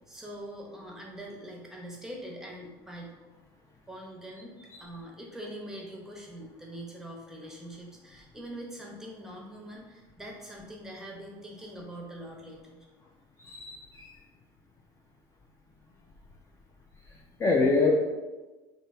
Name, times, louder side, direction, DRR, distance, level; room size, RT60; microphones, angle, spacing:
voice 1, 0.1-3.2 3.9-4.5 4.8-12.8, right 1 dB, 5° right, -1 dB, 0.8 m, -43 dB
voice 2, 13.4-14.1 17.4-17.9, left 3 dB, 25° left, -2 dB, 0.4 m, -25 dB
3.1 x 2.4 x 3.5 m, 1.2 s
supercardioid pair, 100°, 12 cm